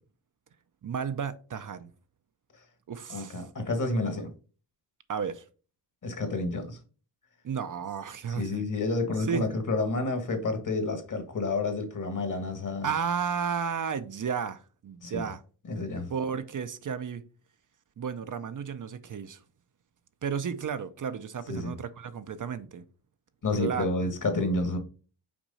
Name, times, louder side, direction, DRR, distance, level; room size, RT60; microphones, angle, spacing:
voice 1, 0.8-1.9 2.9-3.5 5.1-5.5 7.4-8.6 9.3-9.5 12.8-15.4 16.1-17.2 18.0-19.4 20.2-22.8 23.6-23.9, right 7 dB, 50° right, 0.5 m, -33 dB
voice 2, 3.1-4.3 6.0-6.8 8.3-12.9 15.0-15.2 15.7-16.1 21.5-21.7 23.4-24.8, left 2 dB, 45° left, 1.4 m, -30 dB
6.0 x 4.6 x 4.0 m
wide cardioid pair, 160°, 41 cm